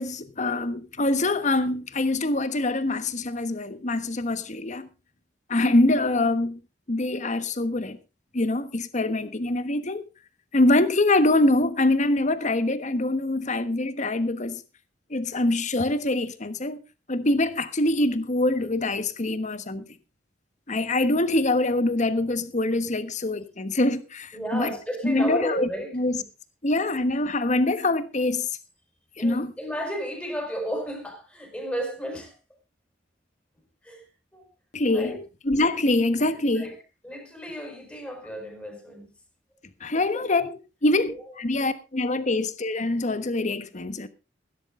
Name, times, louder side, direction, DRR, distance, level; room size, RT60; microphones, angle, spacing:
voice 1, 0.0-4.9 5.5-6.6 6.9-8.0 8.3-10.0 10.5-14.6 15.1-16.8 17.1-19.8 20.7-24.7 25.0-25.7 25.9-26.2 26.6-28.5 29.2-29.5 34.7-35.2 35.4-36.7 39.8-44.1, left 2 dB, 40° left, 1.3 m, -24 dB
voice 2, 24.3-25.9 29.2-32.3 33.8-34.0 34.3-34.4 34.9-35.2 36.3-36.7 37.0-39.1 39.9-40.3 41.0-41.2, right 1 dB, 10° left, 5.3 m, -33 dB
15.5 x 13.0 x 3.7 m
head